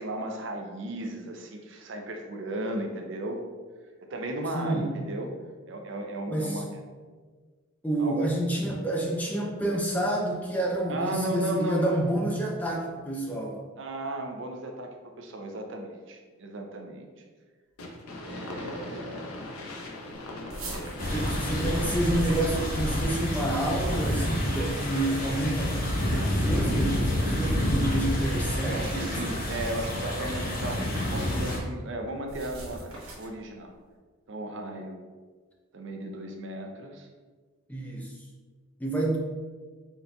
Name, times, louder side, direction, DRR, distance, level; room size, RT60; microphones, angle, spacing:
voice 1, 0.0-3.4 4.0-5.3 5.7-6.7 8.0-8.3 10.9-12.0 13.8-17.1 18.2-19.4 20.6-21.5 28.7-33.7 34.3-35.0 35.7-37.1, right 1 dB, 55° right, 3 dB, 0.5 m, -35 dB
voice 2, 4.5-4.9 6.3-6.6 7.8-13.6 21.1-29.3 37.7-38.1 38.8-39.2, right 1 dB, 5° left, -1 dB, 0.4 m, -29 dB
sound 1, 17.8-26.7, left 1 dB, 90° left, 0.6 m, -41 dB
sound 2, 20.5-23.1 23.7-24.5 25.7-26.4 27.2-27.4 29.2-30.0 30.9-31.4 32.3-33.4, right 1 dB, 75° right, 0.8 m, -41 dB
sound 3, 21.0-31.6, left 1 dB, 40° left, 0.8 m, -28 dB
4.0 x 3.8 x 2.2 m, 1.5 s
head